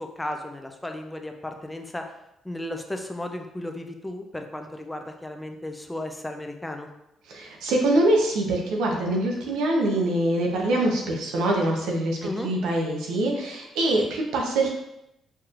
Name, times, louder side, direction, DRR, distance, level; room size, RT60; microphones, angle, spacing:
voice 1, 0.0-2.1 2.4-6.9 12.2-12.5, left 1 dB, 10° left, 4 dB, 0.5 m, -34 dB
voice 2, 7.3-14.8, right 1 dB, 90° right, 0 dB, 0.8 m, -24 dB
4.5 x 3.0 x 2.5 m, 0.84 s
cardioid pair, 90°, 0 cm